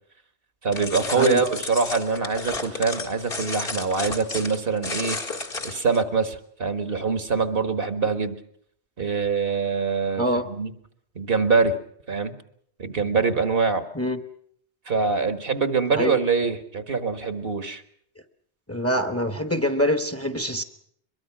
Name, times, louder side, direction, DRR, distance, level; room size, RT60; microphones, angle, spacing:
voice 1, 0.6-5.2 5.6-8.4 9.0-10.7 11.2-11.8 12.1-12.3 12.8-13.9 14.9-17.8, right 5 dB, 60° right, 10 dB, 1.7 m, -24 dB
sound 1, 0.7-6.0, left 3 dB, 60° left, 2.2 m, -32 dB
voice 2, 18.7-20.6, equal, 15° left, 9 dB, 1.2 m, -24 dB
23.0 x 22.5 x 6.1 m, 0.65 s
omnidirectional pair, 1.1 m